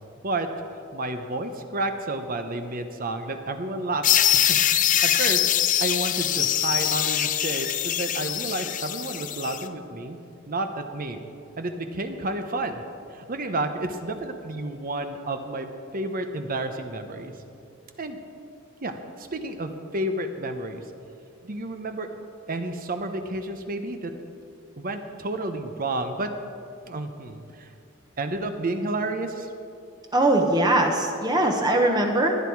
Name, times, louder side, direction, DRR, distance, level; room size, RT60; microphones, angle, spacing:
voice 1, 0.9-5.5 5.8-10.2 10.5-11.3 11.6-12.8 13.1-17.3 18.0-18.2 18.8-20.8 21.4-22.1 22.5-24.1 24.7-26.3 26.9-27.7 28.2-29.5, right 2 dB, 45° right, 7 dB, 0.8 m, -31 dB
sound 1, 4.0-9.6, left 11 dB, 40° left, 0.5 m, -23 dB
voice 2, 30.1-32.4, right 1 dB, 20° right, 2 dB, 1.0 m, -21 dB
18.0 x 10.5 x 4.7 m, 2.5 s
head